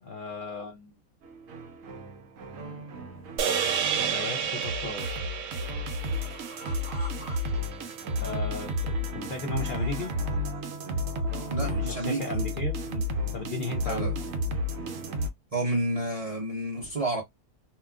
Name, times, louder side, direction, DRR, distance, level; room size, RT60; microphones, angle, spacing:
voice 1, 0.0-1.0 4.0-5.1 8.2-10.1 11.6-13.0 13.3-14.1, left 3 dB, 80° left, 0.4 m, -35 dB
sound 1, 1.2-15.3, left 1 dB, 65° right, 0.9 m, -32 dB
sound 2, 3.1-3.2 3.7-4.8 5.2-7.4 7.7-8.3 8.7-8.9 9.4-10.6 11.0-12.0, equal, 10° left, 0.6 m, -49 dB
sound 3, 3.4-7.8, right 7 dB, 85° right, 1.1 m, -31 dB
voice 2, 11.5-12.2 13.8-14.1 15.5-17.2, right 1 dB, 35° right, 0.6 m, -30 dB
2.9 x 2.3 x 2.3 m
omnidirectional pair, 1.6 m